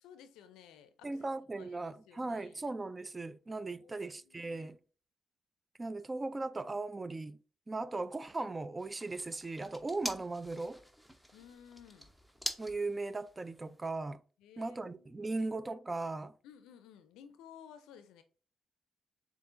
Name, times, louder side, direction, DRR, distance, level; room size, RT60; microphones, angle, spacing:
voice 1, 0.0-1.3 1.6-2.6 3.7-4.5 11.3-12.1 14.4-15.6 16.4-18.2, left 8 dB, 80° left, 0.4 m, -56 dB
voice 2, 1.0-4.8 5.8-7.4 7.7-10.8 12.6-14.2 14.6-16.3, right 3 dB, 30° right, 0.3 m, -38 dB
sound 1, 8.8-13.9, equal, 5° right, 0.7 m, -45 dB
6.7 x 2.4 x 2.5 m
hypercardioid pair, 45°, 0 cm